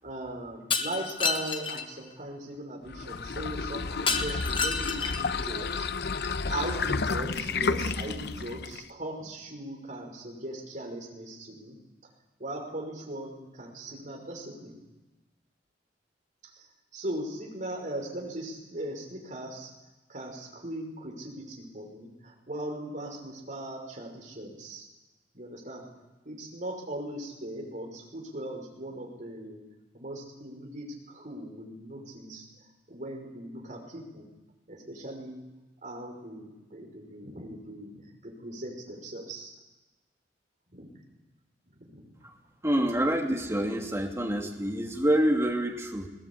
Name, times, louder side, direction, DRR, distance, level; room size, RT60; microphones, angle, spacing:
voice 1, 0.0-5.9 6.5-11.8 12.4-14.8 16.5-16.6 16.9-19.7 20.1-24.9 25.3-25.9 26.2-29.6 29.9-32.5 32.9-34.3 34.7-35.4 35.8-39.5 40.7-41.0 41.8-42.1, right 1 dB, 45° right, 1 dB, 5.9 m, -39 dB
Shatter, 0.7-1.9 4.1-5.3, left 4 dB, 30° left, 1.5 m, -29 dB
sound 1, 2.9-8.9, left 4 dB, 65° left, 0.8 m, -31 dB
voice 2, 42.6-46.1, right 1 dB, 15° right, 1 dB, 2.8 m, -27 dB
21.0 x 18.5 x 8.8 m, 1.1 s
head